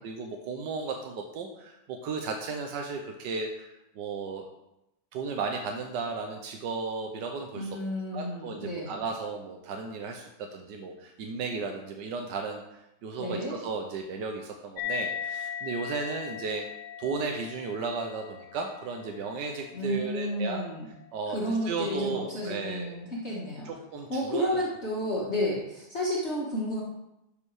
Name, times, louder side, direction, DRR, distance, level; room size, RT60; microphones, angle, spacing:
voice 1, 0.0-4.5 5.1-7.7 8.1-12.6 13.0-16.6 17.0-20.6 21.1-22.9 23.6-24.6, right 4 dB, 90° right, 3 dB, 1.5 m, -35 dB
voice 2, 7.6-8.9 13.2-13.6 19.7-20.8 21.3-23.7 24.1-26.8, equal, 40° left, -5 dB, 1.9 m, -31 dB
sound 1, 14.8-21.7, left 8 dB, 85° left, 1.5 m, -39 dB
12.0 x 5.3 x 4.8 m, 0.88 s
omnidirectional pair, 1.8 m